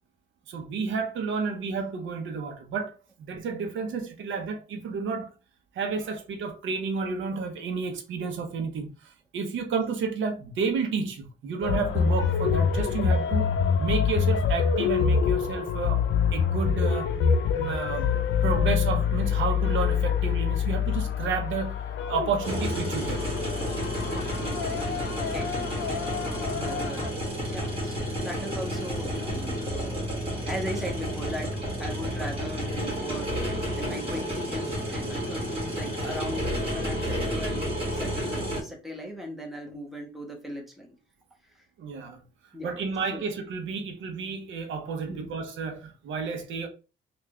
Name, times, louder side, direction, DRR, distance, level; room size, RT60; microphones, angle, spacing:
voice 1, 0.5-3.0 3.3-5.3 5.7-13.5 13.8-16.0 16.3-17.1 17.4-18.1 18.4-21.8 22.1-23.2 26.5-26.9 41.8-42.2 42.6-46.7, right 5 dB, 75° right, 0.8 m, -31 dB
sound 1, 11.6-27.1, left 6 dB, 70° left, 0.5 m, -26 dB
sound 2, 22.4-38.6, equal, 30° right, 2.0 m, -31 dB
voice 2, 24.1-27.0 27.4-31.5 31.8-41.0 41.6-41.7 42.5-42.7 43.1-43.2 45.1-45.3, equal, ahead, 1.1 m, -39 dB
3.5 x 2.4 x 3.2 m
cardioid pair, 90°, 20 cm